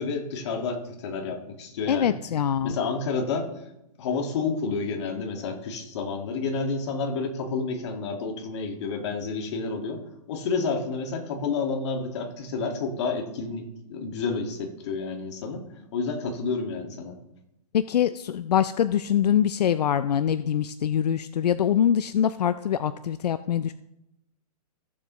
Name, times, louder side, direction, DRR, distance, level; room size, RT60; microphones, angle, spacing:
voice 1, 0.0-2.2 2.6-3.5 4.0-10.0 10.3-15.6 15.9-17.2, left 4 dB, 45° left, 3 dB, 1.9 m, -30 dB
voice 2, 1.9-2.8 17.7-23.7, left 9 dB, 80° left, 13 dB, 0.5 m, -24 dB
15.5 x 7.2 x 3.1 m, 0.86 s
hypercardioid pair, 155°, 20 cm